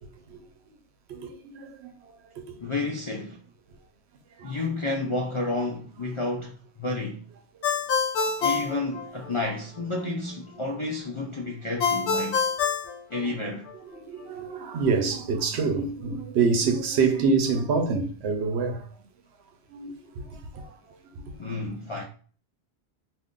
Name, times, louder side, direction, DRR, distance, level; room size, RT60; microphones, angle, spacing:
voice 1, 1.1-2.7 4.4-4.6 7.7-7.8 13.2-13.3 13.7-18.9 19.7-21.4, right 4 dB, 80° right, 0.9 m, -27 dB
voice 2, 2.6-3.4 4.4-7.2 8.4-12.5 13.1-13.7 21.4-22.0, left 2 dB, 50° left, 0.3 m, -31 dB
Ringtone, 7.6-9.6 11.8-13.8, left 5 dB, 85° left, 0.9 m, -26 dB
2.5 x 2.5 x 3.6 m
omnidirectional pair, 1.1 m